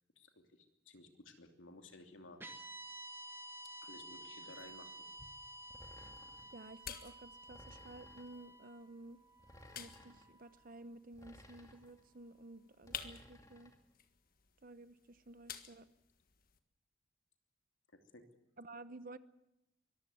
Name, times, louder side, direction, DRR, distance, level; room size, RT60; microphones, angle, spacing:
voice 1, 0.2-2.4 3.8-4.9 17.9-18.2, left 2 dB, 75° left, 5 dB, 2.8 m, -56 dB
sound 1, 2.4-10.7, right 1 dB, 10° right, 1.9 m, -52 dB
sound 2, 4.6-16.6, left 8 dB, 45° left, 1.6 m, -54 dB
sound 3, 5.7-6.6 7.5-8.4 9.4-10.3 11.1-12.0 12.8-13.8, left 1 dB, 15° left, 2.4 m, -59 dB
voice 2, 6.5-9.2 9.8-13.7 14.6-15.9 18.6-19.2, right 2 dB, 45° right, 14 dB, 0.9 m, -53 dB
24.0 x 15.0 x 9.6 m, 0.88 s
head